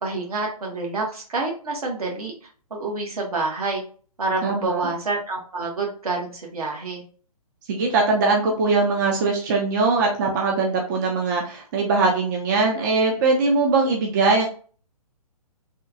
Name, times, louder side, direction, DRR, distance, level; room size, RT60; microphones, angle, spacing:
voice 1, 0.0-2.3 2.7-3.8 4.2-7.0, right 3 dB, 70° right, -1 dB, 1.3 m, -27 dB
voice 2, 4.4-4.9 7.7-14.5, right 3 dB, 30° right, 0 dB, 0.6 m, -21 dB
3.4 x 2.3 x 2.7 m, 0.43 s
figure-of-eight pair, 130°, 20 cm